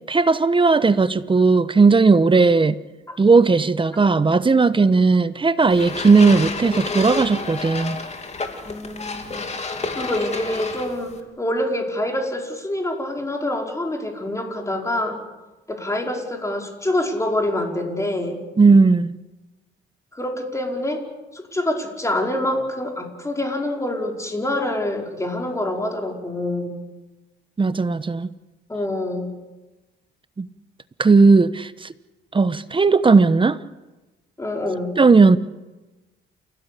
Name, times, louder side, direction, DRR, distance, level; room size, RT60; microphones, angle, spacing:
voice 1, 0.1-2.8 3.2-8.0 18.6-19.2 27.6-28.3 30.4-30.5 31.0-31.9 32.3-33.6 35.0-35.4, right 4 dB, 25° right, 14 dB, 1.1 m, -16 dB
sound 1, 5.7-11.2, left 3 dB, 35° left, 3.3 m, -30 dB
voice 2, 8.7-15.2 15.7-18.4 20.1-21.0 21.3-26.8 28.7-29.3 34.4-35.0, left 1 dB, 15° left, 2 dB, 5.2 m, -26 dB
29.5 x 16.5 x 8.5 m, 1.1 s
cardioid pair, 90°, 20 cm